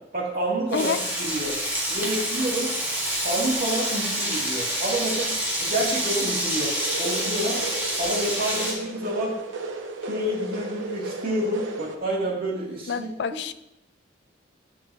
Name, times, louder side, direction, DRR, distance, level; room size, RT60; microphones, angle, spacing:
voice 1, 0.1-1.6 1.9-2.7 3.2-5.3 5.6-6.7 7.0-7.6 8.0-9.3 10.1-13.1, right 1 dB, 50° right, -4 dB, 2.5 m, -28 dB
Frying (food), 0.7-8.7, right 1 dB, 10° right, 2.1 m, -27 dB
sound 1, 6.7-12.0, right 2 dB, 80° right, 0.9 m, -34 dB
voice 2, 12.9-13.5, left 6 dB, 65° left, 12 dB, 0.4 m, -28 dB
11.0 x 6.7 x 2.8 m, 0.87 s
head